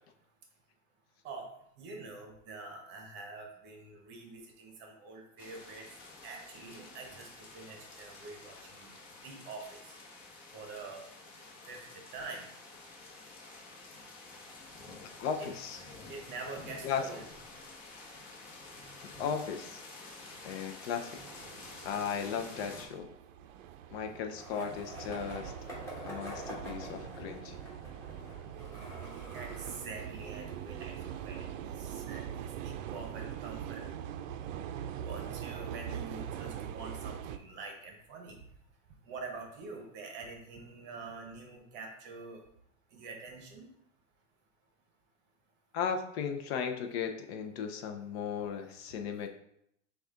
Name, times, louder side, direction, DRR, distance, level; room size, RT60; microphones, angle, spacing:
voice 1, 1.8-5.8 6.2-7.3 7.5-8.9 9.2-9.9 10.5-11.0 11.7-11.8 12.1-12.5 15.4-15.5 16.1-17.2 29.3-31.5 31.8-33.8 34.9-38.4 39.1-42.4 42.9-43.7, right 3 dB, 30° right, 2 dB, 0.8 m, -45 dB
sound 1, 5.4-22.9, left 3 dB, 40° left, 1.2 m, -50 dB
voice 2, 15.2-15.8 16.8-17.0 19.0-19.8 20.4-21.2 21.8-23.1 23.9-25.5 26.0-27.6 45.7-49.3, left 7 dB, 55° left, 5 dB, 0.5 m, -36 dB
sound 2, 21.1-37.4, right 9 dB, 85° right, 0.5 m, -42 dB
Skateboard, 24.4-32.3, equal, 5° left, 1.0 m, -48 dB
6.2 x 2.4 x 3.6 m, 0.75 s
supercardioid pair, 165°, 37 cm